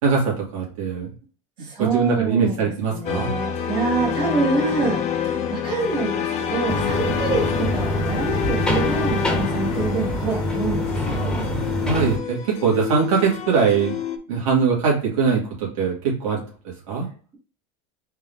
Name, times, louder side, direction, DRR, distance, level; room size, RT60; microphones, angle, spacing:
voice 1, 0.0-1.1 1.8-3.3 11.9-14.0 14.3-16.4 16.9-17.1, right 5 dB, 85° right, -3 dB, 2.2 m, -21 dB
voice 2, 1.6-5.0 5.5-11.4, right 3 dB, 30° right, -3 dB, 2.2 m, -26 dB
sound 1, 3.1-14.2, left 8 dB, 40° left, 0.7 m, -27 dB
sound 2, 6.7-12.2, equal, 5° left, 1.6 m, -25 dB
4.5 x 3.6 x 2.7 m, 0.40 s
supercardioid pair, 125°, 17 cm